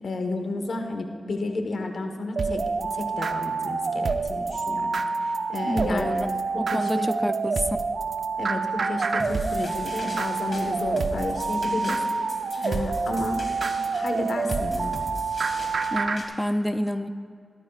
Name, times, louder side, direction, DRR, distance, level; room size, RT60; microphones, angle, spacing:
voice 1, 0.0-6.3 6.7-7.1 8.4-12.0 12.6-13.4 13.8-15.0, left 2 dB, 75° left, 5 dB, 1.2 m, -32 dB
sound 1, 2.4-16.2, right 4 dB, 75° right, 0.6 m, -27 dB
voice 2, 5.6-6.3 6.7-7.8 15.9-17.1, equal, 10° left, 10 dB, 0.4 m, -27 dB
sound 2, 9.2-16.2, left 2 dB, 55° left, 2.0 m, -40 dB
17.0 x 13.5 x 2.4 m, 2.3 s
cardioid pair, 55°, 0 cm